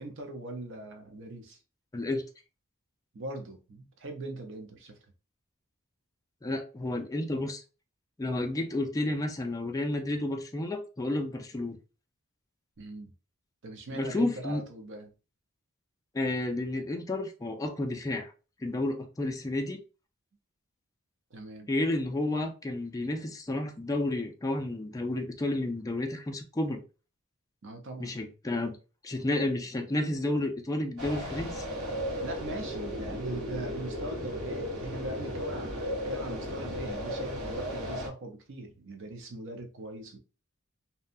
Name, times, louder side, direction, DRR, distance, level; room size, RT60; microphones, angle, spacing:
voice 1, 0.0-1.6 3.1-5.0 12.8-13.1 13.6-15.1 21.3-21.7 27.6-28.2 32.2-40.2, right 1 dB, 60° right, 0.7 m, -40 dB
voice 2, 1.9-2.2 6.4-7.6 8.2-11.8 13.9-14.6 16.1-18.3 18.6-19.8 21.7-26.8 28.0-28.8 29.0-31.7, left 1 dB, 15° left, 0.4 m, -31 dB
sound 1, 31.0-38.1, equal, 85° right, 1.3 m, -35 dB
2.7 x 2.2 x 2.5 m
head